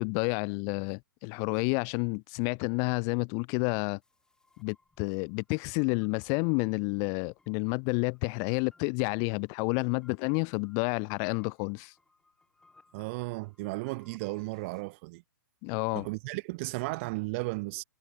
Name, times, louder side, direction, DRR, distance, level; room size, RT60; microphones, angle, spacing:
voice 1, 0.0-4.0 4.6-11.9 15.6-16.1, left 40 dB or more, 30° left, 0.5 m, -30 dB
sound 1, 4.0-14.8, left 3 dB, 5° left, 3.1 m, -67 dB
voice 2, 12.9-15.2 15.9-17.8, right 26 dB, 35° right, 1.0 m, -35 dB
figure-of-eight pair, 125°, 11 cm